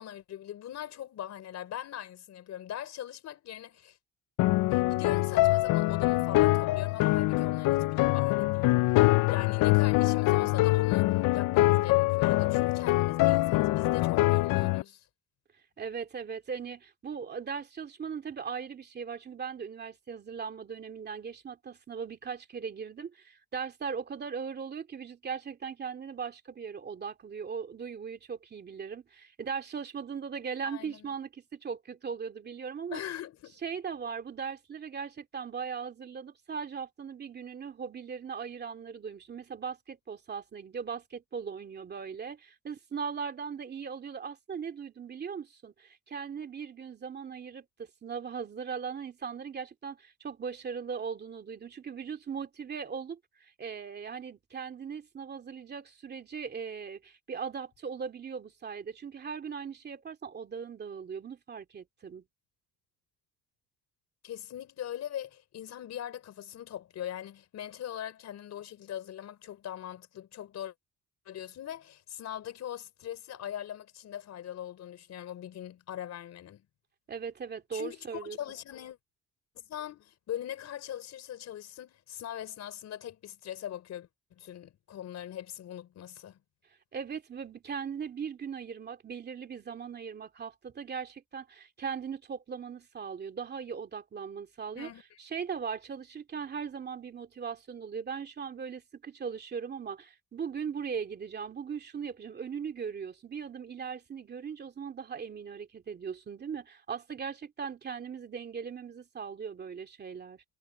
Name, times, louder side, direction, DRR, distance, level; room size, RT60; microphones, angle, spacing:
voice 1, 0.0-4.0 4.7-15.1 30.6-31.1 32.9-33.6 64.2-70.7 71.2-76.6 77.7-79.0 79.5-86.4 94.7-95.0, left 11 dB, 50° left, 4.7 m, -41 dB
sound 1, 4.4-14.8, left 19 dB, 70° left, 0.6 m, -24 dB
voice 2, 15.8-33.0 33.6-62.2 77.1-78.4 86.9-94.9 95.2-110.4, right 6 dB, 30° right, 2.6 m, -39 dB
cardioid pair, 155°, 34 cm